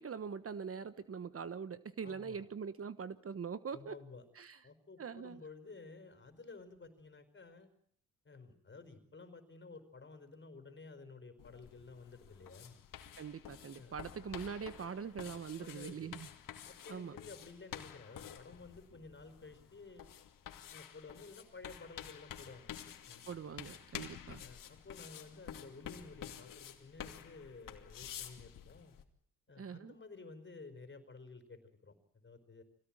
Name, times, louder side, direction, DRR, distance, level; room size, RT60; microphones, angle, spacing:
voice 1, 0.0-3.9 4.4-4.6 5.0-5.4 13.2-16.3 16.9-17.2 23.3-24.4 29.6-29.9, right 6 dB, 45° right, 14 dB, 1.3 m, -43 dB
voice 2, 2.0-2.4 3.7-4.2 4.6-7.7 8.2-12.8 13.7-14.0 15.6-16.1 16.6-20.1 20.7-22.8 23.1-23.4 24.4-29.0 29.5-31.9 32.2-32.6, left 3 dB, 35° left, 9 dB, 4.9 m, -53 dB
sound 1, 11.4-29.0, left 10 dB, 75° left, 2.6 m, -50 dB
25.0 x 17.0 x 8.9 m, 0.66 s
cardioid pair, 80°, 33 cm